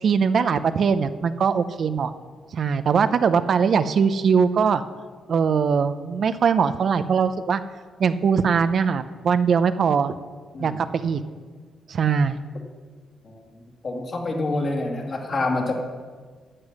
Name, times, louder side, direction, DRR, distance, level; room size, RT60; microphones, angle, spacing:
voice 1, 0.0-2.1 2.5-4.8 5.3-7.6 8.0-10.1 10.6-11.2 11.9-12.4, right 6 dB, 60° right, 11 dB, 0.6 m, -21 dB
voice 2, 13.8-15.8, left 2 dB, 50° left, 0 dB, 2.5 m, -27 dB
12.0 x 7.9 x 6.4 m, 1.5 s
supercardioid pair, 65°, 0 cm